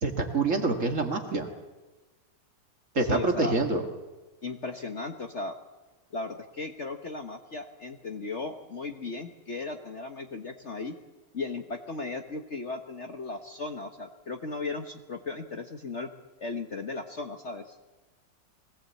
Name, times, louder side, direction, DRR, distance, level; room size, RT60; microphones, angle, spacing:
voice 1, 0.0-1.5 2.9-3.8, right 3 dB, 40° right, 4 dB, 2.2 m, -26 dB
voice 2, 3.0-3.6 4.4-5.5 6.1-10.9 11.3-16.1 16.4-17.7, left 3 dB, 40° left, 5 dB, 1.3 m, -36 dB
21.5 x 18.0 x 8.3 m, 1.2 s
omnidirectional pair, 2.1 m